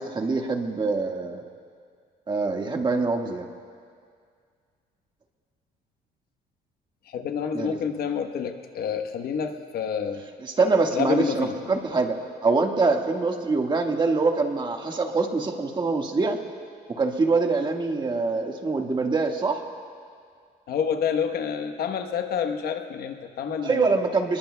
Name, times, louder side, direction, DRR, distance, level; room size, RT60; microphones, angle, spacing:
voice 1, 0.0-1.4 2.3-3.5 7.5-7.8 10.4-16.4 16.9-19.6 23.6-24.4, right 3 dB, 25° right, 2 dB, 1.6 m, -24 dB
voice 2, 7.1-10.2 10.9-11.6 20.7-23.9, left 7 dB, 65° left, 6 dB, 1.1 m, -28 dB
25.5 x 21.5 x 2.3 m, 2.1 s
cardioid pair, 110°, 17 cm